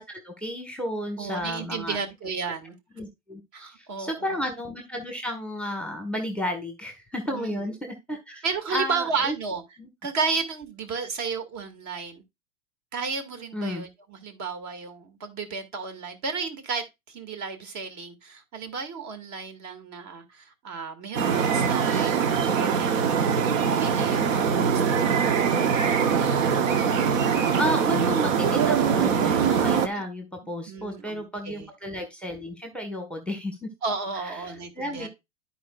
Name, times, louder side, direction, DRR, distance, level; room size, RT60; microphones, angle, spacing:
voice 1, 0.0-2.0 2.4-2.5 2.9-8.4 8.7-9.3 9.8-9.9 13.5-13.8 27.3-33.7 34.2-35.1, equal, 5° left, 1.4 m, -32 dB
voice 2, 1.2-2.7 3.5-4.3 7.3-7.6 8.4-9.6 10.0-12.2 12.9-23.1 23.6-25.7 30.7-31.7 33.8-35.1, right 5 dB, 40° right, 2.2 m, -33 dB
sound 1, 21.2-29.9, right 7 dB, 70° right, 1.2 m, -23 dB
13.0 x 4.6 x 2.4 m
hypercardioid pair, 100°, 41 cm